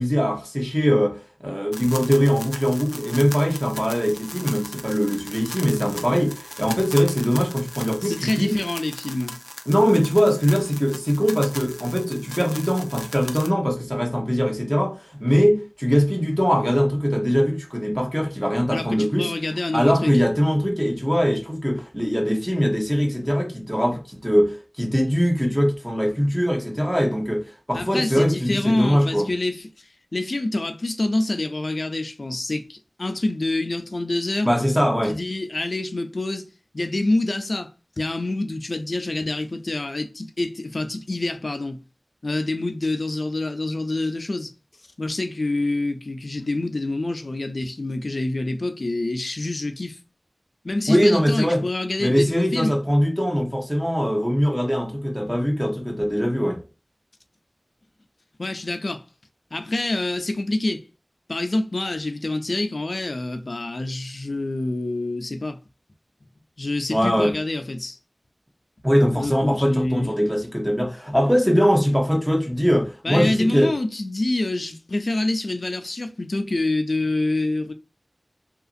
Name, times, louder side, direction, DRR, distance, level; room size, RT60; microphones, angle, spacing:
voice 1, 0.0-8.6 9.7-19.3 19.7-29.3 34.4-35.2 50.9-51.6 52.0-56.6 66.9-67.3 68.8-73.7, equal, 5° right, 0.8 m, -21 dB
sound 1, 1.7-13.5, equal, 10° left, 0.5 m, -38 dB
voice 2, 8.0-9.4 18.7-20.1 27.7-29.7 30.1-34.5 35.1-36.5 36.7-37.7 38.0-41.8 42.2-44.5 45.0-50.0 50.6-52.8 58.4-59.0 59.5-60.9 61.3-65.6 66.6-68.0 69.2-70.1 73.0-77.7, left 2 dB, 80° left, 0.4 m, -26 dB
2.9 x 2.4 x 2.5 m
wide cardioid pair, 50°, 0 cm